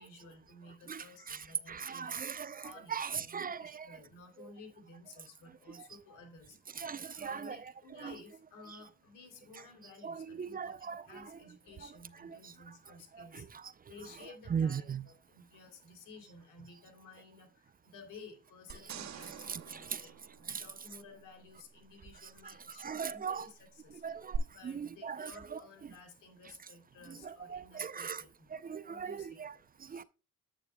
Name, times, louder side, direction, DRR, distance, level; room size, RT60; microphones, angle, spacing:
voice 1, 0.0-2.2 2.6-6.6 7.1-13.5 13.9-24.1 24.5-30.0, left 3 dB, 85° left, 3.0 m, -55 dB
voice 2, 0.9-1.4 1.7-3.9 6.8-7.6 8.0-8.1 10.0-11.3 12.2-12.4 13.2-13.4 14.5-15.0 19.5-20.0 20.5-20.6 22.8-23.5 24.0-24.4 24.6-25.6 27.2-28.2 28.6-29.5 29.9-30.0, right 6 dB, 30° right, 0.5 m, -39 dB
sound 1, 18.7-21.2 24.3-24.4, right 10 dB, 65° right, 1.8 m, -45 dB
9.1 x 8.2 x 2.2 m
cardioid pair, 90°, 30 cm